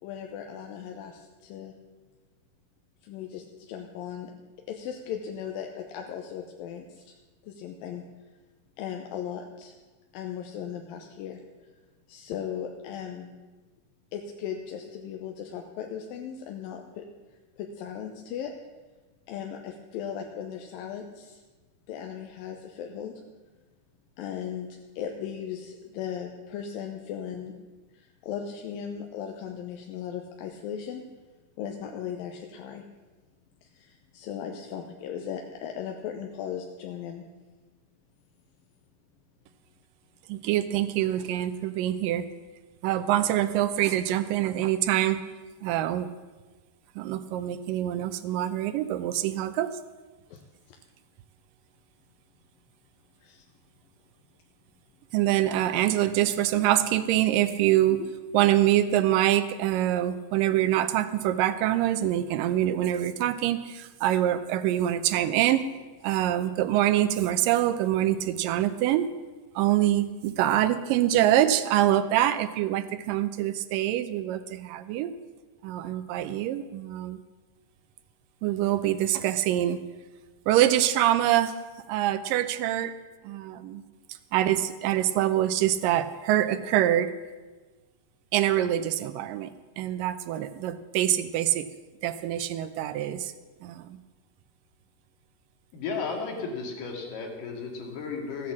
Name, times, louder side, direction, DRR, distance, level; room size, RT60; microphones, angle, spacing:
voice 1, 0.0-1.7 3.0-4.3 4.7-7.2 7.4-8.0 8.8-9.7 10.1-11.4 12.1-13.3 14.1-17.0 17.6-18.5 19.3-21.4 21.9-23.1 24.2-27.5 27.9-31.0 31.6-32.8 33.6-37.2 50.3-50.4 50.7-50.8 53.2-53.4, left 8 dB, 85° left, 3 dB, 2.5 m, -37 dB
voice 2, 40.3-42.3 42.8-45.2 45.6-46.1 47.0-49.8 55.1-58.0 58.3-65.7 66.0-69.1 69.6-75.1 75.6-77.2 78.4-79.8 80.5-81.6 81.9-82.9 83.2-83.8 84.3-87.1 88.3-91.7 92.0-93.3 93.6-94.0, right 12 dB, 80° right, 12 dB, 2.2 m, -25 dB
voice 3, 95.7-98.5, left 4 dB, 70° left, 1 dB, 3.6 m, -34 dB
14.5 x 8.5 x 7.3 m, 1.3 s
omnidirectional pair, 4.1 m